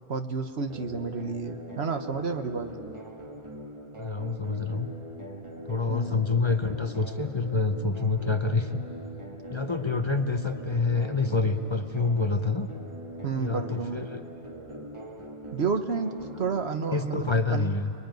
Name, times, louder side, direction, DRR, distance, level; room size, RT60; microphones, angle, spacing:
voice 1, 0.1-2.7 5.9-6.3 13.2-14.1 15.5-17.7, right 5 dB, 70° right, 7 dB, 1.4 m, -31 dB
sound 1, 0.7-16.7, equal, 25° right, 1.8 m, -42 dB
voice 2, 4.0-4.9 5.7-8.8 9.5-12.7 13.3-14.2 16.9-17.9, left 4 dB, 30° left, 7 dB, 0.8 m, -27 dB
29.0 x 21.5 x 9.3 m, 2.8 s
omnidirectional pair, 1.1 m